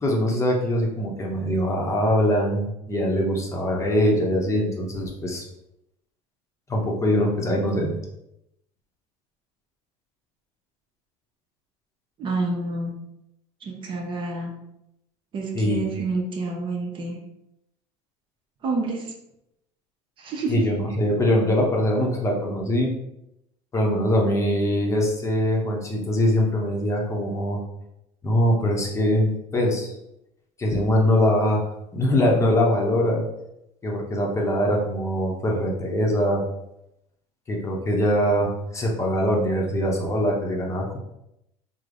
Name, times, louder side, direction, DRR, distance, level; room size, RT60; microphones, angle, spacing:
voice 1, 0.0-5.4 6.7-7.9 15.5-15.8 20.5-22.9 23.7-27.6 28.2-30.0 30.6-31.7 31.9-33.2 33.8-36.4 37.5-41.0, equal, 20° left, -1 dB, 0.7 m, -22 dB
voice 2, 12.2-13.0 13.6-14.5 15.3-17.2 18.6-19.1 20.2-20.6, right 3 dB, 35° right, 0 dB, 0.6 m, -28 dB
3.2 x 2.0 x 3.7 m, 0.83 s
supercardioid pair, 125°, 14 cm